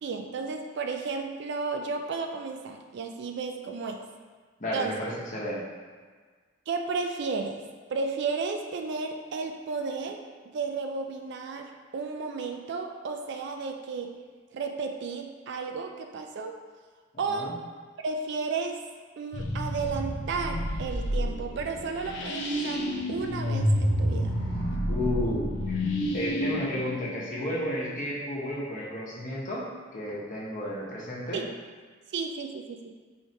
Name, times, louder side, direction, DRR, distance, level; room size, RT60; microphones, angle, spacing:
voice 1, 0.0-4.0 4.7-4.9 6.7-7.6 7.9-10.2 10.5-14.1 14.5-16.5 17.2-17.5 18.0-18.8 19.2-22.8 23.1-24.3 31.3-31.4 32.1-32.9, right 4 dB, 60° right, 4 dB, 0.4 m, -33 dB
voice 2, 4.6-5.6 17.3-17.5 24.9-25.8 26.1-31.4, left 1 dB, 40° left, -5 dB, 0.9 m, -32 dB
sound 1, 19.3-27.9, equal, 65° left, 0.6 m, -29 dB
4.7 x 3.2 x 2.8 m, 1.5 s
head